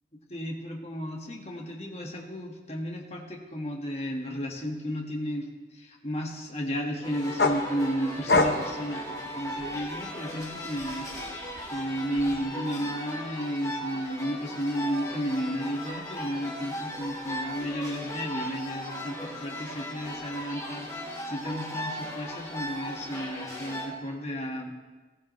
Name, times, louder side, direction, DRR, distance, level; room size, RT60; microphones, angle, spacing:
voice 1, 0.3-11.1 11.7-24.7, equal, 35° left, 0 dB, 1.7 m, -33 dB
sound 1, 7.0-23.9, equal, 20° left, 2.3 m, -37 dB
sound 2, 7.4-10.0 10.4-12.4, left 2 dB, 65° left, 1.0 m, -28 dB
15.5 x 15.0 x 3.2 m, 1.3 s
head